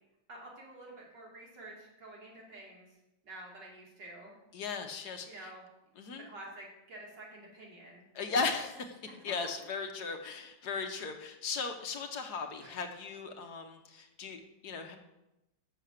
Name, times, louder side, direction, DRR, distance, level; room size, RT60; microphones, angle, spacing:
voice 1, 0.3-3.0 3.2-4.4 5.2-5.6 6.3-8.0 9.0-9.3 12.6-12.7, right 1 dB, 70° right, -3 dB, 2.9 m, -49 dB
voice 2, 4.5-5.5 6.0-6.3 8.1-15.0, left 4 dB, 65° left, 5 dB, 1.4 m, -37 dB
6.9 x 6.8 x 6.4 m, 0.91 s
omnidirectional pair, 1.9 m